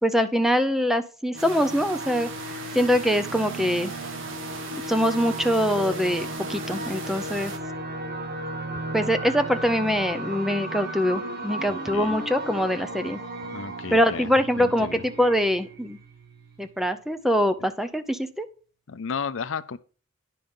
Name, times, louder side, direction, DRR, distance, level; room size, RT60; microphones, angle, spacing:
voice 1, 0.0-2.3 2.7-3.9 4.7-7.5 8.9-13.2 13.9-16.0 16.6-18.5, equal, ahead, 0.6 m, -23 dB
sound 1, 1.3-16.7, right 1 dB, 45° right, 1.4 m, -35 dB
sound 2, 1.4-7.6, right 4 dB, 65° right, 1.6 m, -39 dB
voice 2, 11.7-12.1 13.5-14.3 14.6-15.0 18.9-19.8, left 6 dB, 70° left, 0.5 m, -33 dB
10.0 x 5.6 x 5.3 m
head